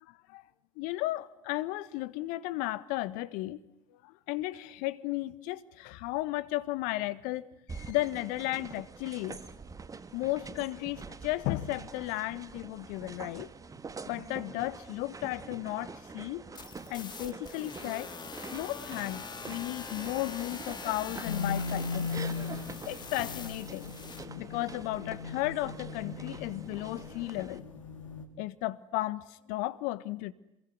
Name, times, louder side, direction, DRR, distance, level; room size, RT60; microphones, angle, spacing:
voice 1, 0.8-3.6 4.0-9.4 10.1-13.5 14.1-16.4 16.9-18.1 18.5-22.1 22.9-23.9 24.4-27.6 28.4-30.3, left 17 dB, 55° left, 1.6 m, -34 dB
sound 1, 7.7-27.6, right 4 dB, 20° right, 2.0 m, -46 dB
sound 2, 16.5-24.2, left 6 dB, 25° left, 2.9 m, -44 dB
sound 3, 21.2-28.2, left 5 dB, 80° left, 3.5 m, -38 dB
27.5 x 22.5 x 9.6 m
figure-of-eight pair, 75°, 16 cm